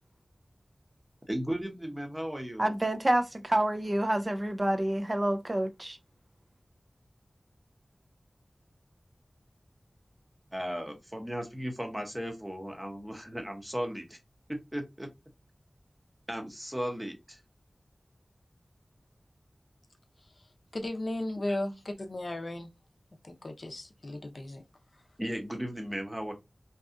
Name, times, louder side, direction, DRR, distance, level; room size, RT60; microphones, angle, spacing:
voice 1, 1.3-2.7 10.5-14.2 14.5-15.1 16.3-17.4 21.5-21.6 25.2-26.3, equal, 15° right, 0.7 m, -36 dB
voice 2, 2.6-6.0, right 1 dB, 35° right, 0.3 m, -28 dB
voice 3, 20.7-22.7 23.2-24.6, left 1 dB, 65° left, 0.5 m, -35 dB
2.7 x 2.3 x 2.4 m
wide cardioid pair, 60°, 0 cm